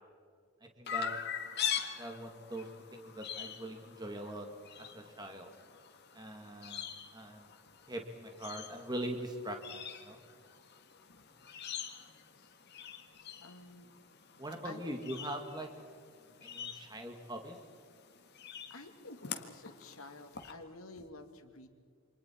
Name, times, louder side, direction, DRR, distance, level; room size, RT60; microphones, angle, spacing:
voice 1, 0.8-1.2 2.0-4.5 4.8-5.5 6.1-6.9 7.1-7.5 7.9-10.2 14.4-15.7 16.4-17.6, right 1 dB, 20° right, 3 dB, 1.9 m, -42 dB
Chirp tweet, 0.9-20.5, left 8 dB, 50° left, 1.7 m, -44 dB
voice 2, 13.1-13.9 14.6-15.1 18.7-21.7, left 2 dB, 75° left, 6 dB, 2.1 m, -51 dB
28.5 x 26.5 x 4.5 m, 2.1 s
head